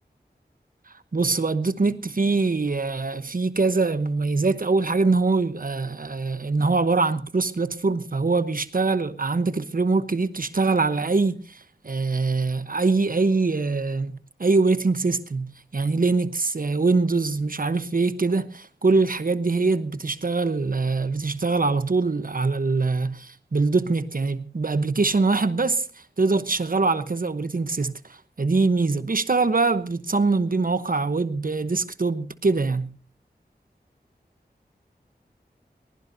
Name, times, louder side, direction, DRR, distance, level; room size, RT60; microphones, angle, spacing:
voice 1, 0.9-33.0, right 3 dB, 55° right, 1.0 m, -23 dB
20.0 x 20.0 x 2.7 m
wide cardioid pair, 65°, 17 cm